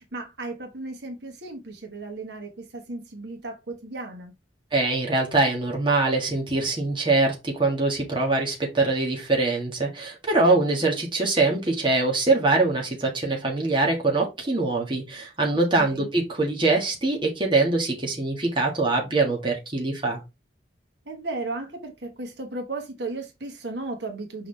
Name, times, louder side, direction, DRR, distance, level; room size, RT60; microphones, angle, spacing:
voice 1, 0.0-4.3 15.8-16.1 21.0-24.5, right 2 dB, 70° right, 1.4 m, -35 dB
voice 2, 4.7-20.2, right 3 dB, 25° right, 1.7 m, -23 dB
5.9 x 5.0 x 3.3 m
head